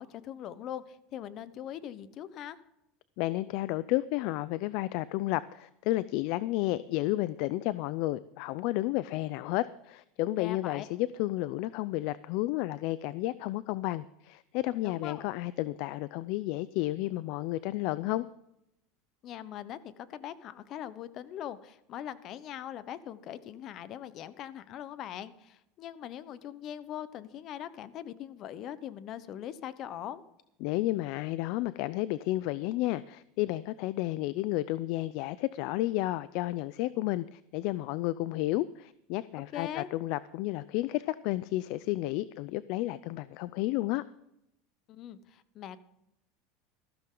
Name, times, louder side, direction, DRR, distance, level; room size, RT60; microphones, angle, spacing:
voice 1, 0.0-2.6 10.4-10.8 14.8-15.2 19.2-30.2 39.5-39.9 44.9-45.8, left 11 dB, 45° left, 15 dB, 1.0 m, -41 dB
voice 2, 3.2-18.2 30.6-44.0, left 17 dB, 65° left, 17 dB, 0.4 m, -32 dB
15.0 x 13.0 x 3.9 m, 0.82 s
supercardioid pair, 115°, 0 cm